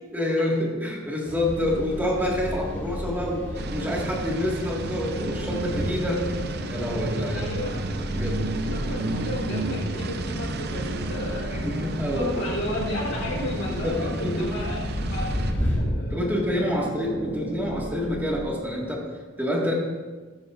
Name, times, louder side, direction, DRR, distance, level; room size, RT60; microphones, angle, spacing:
voice 1, 0.1-3.4 3.7-6.2 6.7-7.5 8.1-8.4 11.5-12.3 13.7-14.5 16.1-19.0 19.4-19.7, left 1 dB, 10° right, -3 dB, 1.7 m, -27 dB
sound 1, 1.3-15.8, equal, 10° left, 2.2 m, -35 dB
sound 2, 1.4-18.8, equal, 50° left, 1.3 m, -36 dB
sound 3, 3.5-15.5, right 3 dB, 50° right, 0.6 m, -33 dB
voice 2, 7.3-7.8 8.5-11.7 12.1-15.3 15.6-15.8 16.6-16.8, left 1 dB, 85° left, -3 dB, 4.0 m, -33 dB
15.0 x 11.5 x 2.5 m, 1.3 s
head